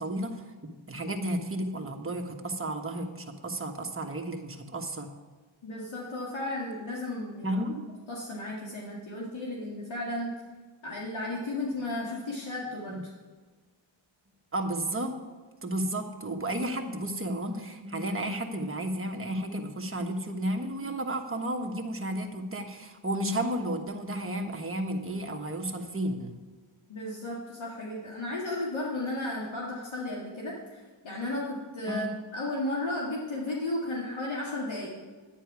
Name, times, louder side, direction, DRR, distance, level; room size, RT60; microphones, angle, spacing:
voice 1, 0.0-5.1 7.4-7.9 12.9-13.0 14.5-15.1 15.6-26.3 31.9-32.1, right 1 dB, 25° right, 2 dB, 1.3 m, -32 dB
voice 2, 5.6-7.6 8.1-10.3 10.8-13.0 26.9-34.9, left 1 dB, 70° left, -4 dB, 2.0 m, -34 dB
9.9 x 9.5 x 4.8 m, 1.4 s
wide cardioid pair, 95°, 49 cm